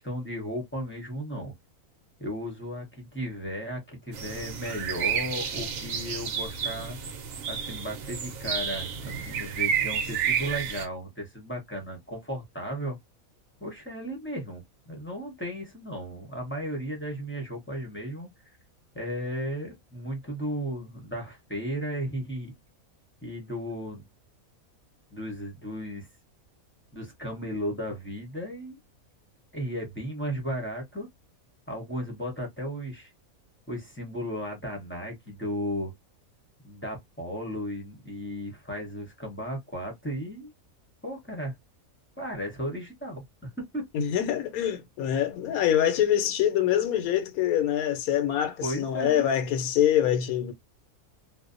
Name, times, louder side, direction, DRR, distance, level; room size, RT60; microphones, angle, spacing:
voice 1, 0.0-1.5 2.2-7.0 7.5-13.0 13.6-18.3 18.9-22.5 23.2-24.0 25.1-26.1 26.9-28.8 29.5-31.1 31.7-33.1 33.7-35.9 36.6-40.5 41.0-41.6 42.2-43.2 43.6-43.8 48.6-49.2, equal, 10° left, 0.6 m, -35 dB
sound 1, 4.1-10.9, right 7 dB, 75° right, 1.0 m, -31 dB
voice 2, 43.9-50.5, left 10 dB, 80° left, 1.1 m, -25 dB
2.5 x 2.1 x 2.4 m
omnidirectional pair, 1.5 m